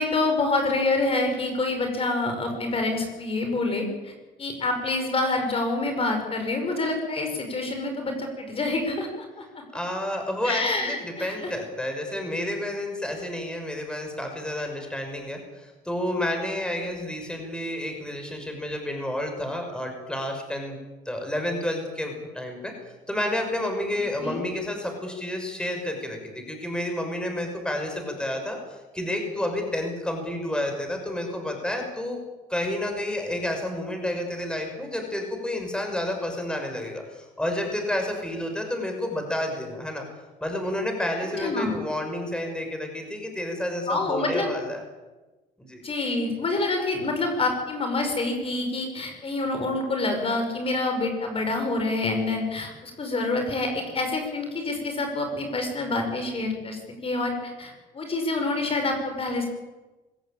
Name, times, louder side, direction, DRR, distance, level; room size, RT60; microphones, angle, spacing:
voice 1, 0.0-4.1 4.4-9.1 9.4-9.6 10.4-11.5 24.2-24.4 41.4-41.8 43.9-44.5 45.8-59.5, left 2 dB, 35° left, 4 dB, 5.5 m, -27 dB
voice 2, 9.7-20.8 21.0-22.7 23.1-28.6 28.9-32.2 32.5-40.0 40.4-44.8 45.6-45.8, left 1 dB, 5° left, 3 dB, 6.1 m, -30 dB
25.0 x 16.5 x 8.9 m, 1.2 s
cardioid pair, 110°, 17 cm